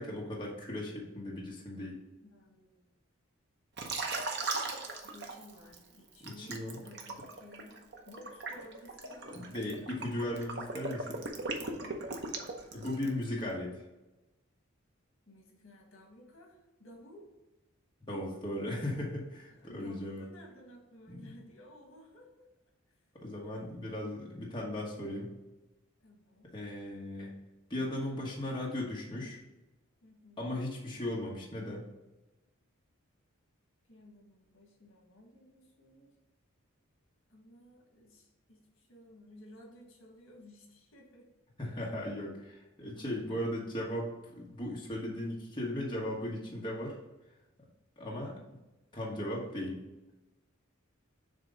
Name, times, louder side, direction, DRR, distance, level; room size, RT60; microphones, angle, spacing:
voice 1, 0.0-2.0 6.2-6.8 9.3-11.2 12.7-13.8 18.1-20.3 21.1-21.3 23.1-25.3 26.5-27.3 27.7-29.4 30.4-31.9 41.6-47.0 48.0-48.3 48.9-49.8, left 1 dB, 20° left, -4 dB, 1.2 m, -37 dB
voice 2, 2.2-2.8 5.0-9.9 11.6-12.1 15.3-17.3 19.5-22.5 26.0-26.6 30.0-30.5 33.9-36.2 37.3-41.3 48.1-48.5 49.5-49.6, left 1 dB, 75° left, 0 dB, 1.6 m, -55 dB
Liquid, 3.8-5.8 6.2-13.2, right 3 dB, 55° right, 0.8 m, -38 dB
7.3 x 2.9 x 5.1 m, 1.0 s
head